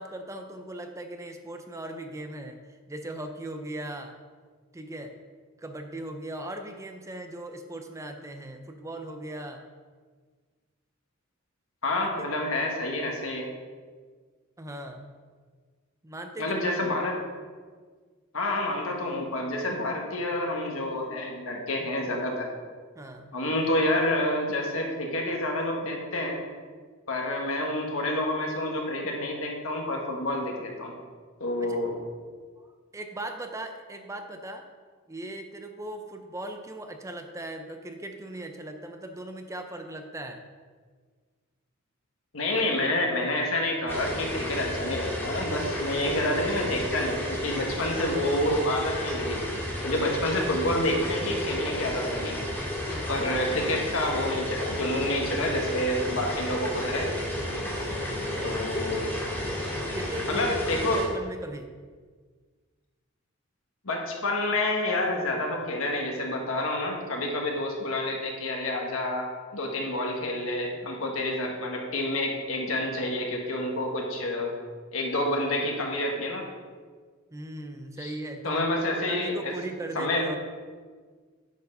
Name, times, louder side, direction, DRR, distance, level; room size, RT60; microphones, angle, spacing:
voice 1, 0.0-2.6 2.9-4.2 4.7-5.1 5.6-9.6 11.9-12.2 14.6-15.1 16.0-16.8 23.0-23.4 31.6-31.8 32.6-32.7 32.9-34.6 35.1-40.4 52.8-53.3 57.9-59.1 59.8-61.7 77.3-78.6 79.1-80.4, right 1 dB, 15° right, 5 dB, 0.5 m, -38 dB
voice 2, 11.8-13.5 16.4-17.2 18.3-22.5 23.3-26.3 27.1-30.9 31.4-31.9 42.3-49.4 49.8-52.4 53.1-57.1 58.4-59.1 60.3-61.0 63.8-74.5 74.9-76.5 78.0-78.1 78.4-79.5 79.9-80.3, left 1 dB, 80° left, 0 dB, 1.6 m, -28 dB
sound 1, 43.9-61.1, left 1 dB, 10° left, 2.2 m, -32 dB
9.2 x 4.6 x 5.5 m, 1.5 s
head